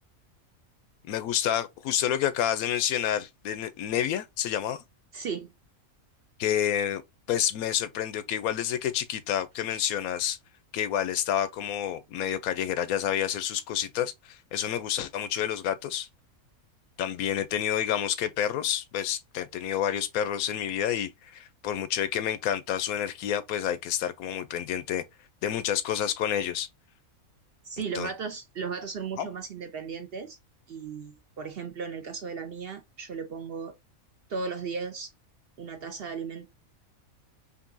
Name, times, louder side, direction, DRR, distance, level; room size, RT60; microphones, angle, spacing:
voice 1, 1.1-4.8 6.4-7.0 7.3-10.4 10.7-16.1 17.0-25.0 25.4-26.7 27.9-28.1 29.2-29.3, left 10 dB, 90° left, 1.1 m, -29 dB
voice 2, 5.1-5.5 27.6-30.4 30.7-33.8 34.3-35.1 35.6-36.5, right 5 dB, 55° right, 0.7 m, -36 dB
5.2 x 2.6 x 2.6 m
omnidirectional pair, 1.5 m